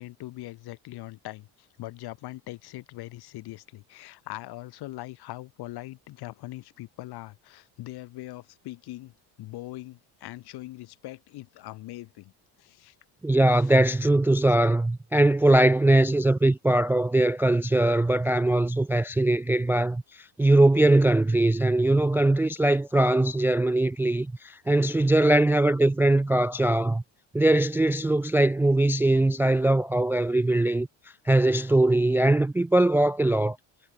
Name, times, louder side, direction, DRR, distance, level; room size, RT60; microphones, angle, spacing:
voice 1, 0.0-9.1 9.4-12.3 12.6-12.9 13.6-13.7, left 17 dB, 70° left, 4.5 m, -41 dB
voice 2, 13.2-27.0 27.3-30.9 31.3-33.6, right 1 dB, 5° right, 0.3 m, -21 dB
supercardioid pair, 100°, 40 cm